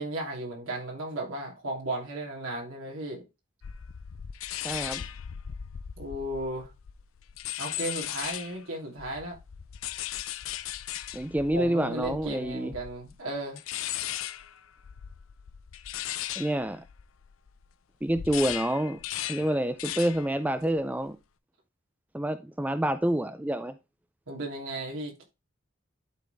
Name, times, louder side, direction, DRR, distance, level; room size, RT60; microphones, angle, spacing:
voice 1, 0.0-3.2 6.0-6.7 7.6-9.4 11.5-13.6 24.3-25.2, right 1 dB, 80° right, 3.0 m, -35 dB
sound 1, 3.6-8.6 9.0-17.7 18.0-20.3 20.6-21.0, left 12 dB, 75° left, 0.5 m, -37 dB
voice 2, 4.6-5.0 11.1-12.7 16.4-16.8 18.0-19.0 19.3-21.2 22.1-23.7, right 1 dB, 5° right, 0.4 m, -28 dB
11.5 x 4.1 x 3.4 m
head